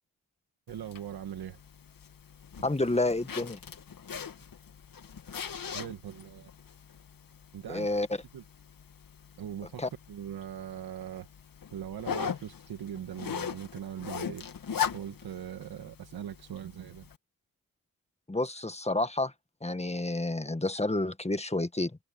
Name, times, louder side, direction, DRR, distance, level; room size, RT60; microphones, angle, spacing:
Zipper (clothing), 0.7-17.2, left 7 dB, 65° left, 2.1 m, -40 dB
voice 1, 0.7-1.6 5.7-6.5 7.5-7.9 8.3-8.4 9.4-9.8 10.1-11.3 11.7-14.5 14.9-17.1, right 10 dB, 85° right, 1.7 m, -40 dB
voice 2, 2.6-3.6 7.7-8.1 9.8-9.9 18.3-19.3 19.6-21.9, left 2 dB, 15° left, 1.8 m, -29 dB
supercardioid pair, 45°, 36 cm